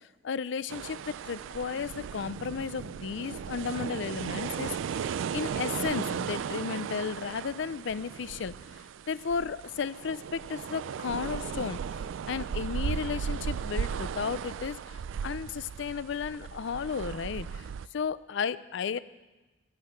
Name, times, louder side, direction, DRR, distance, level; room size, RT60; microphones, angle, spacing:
voice 1, 0.2-8.5 9.1-11.8 12.3-17.7 17.9-19.0, left 6 dB, 70° left, 17 dB, 0.4 m, -34 dB
sound 1, 0.7-17.9, right 7 dB, 80° right, 0.3 m, -36 dB
12.5 x 11.0 x 5.8 m, 1.2 s
head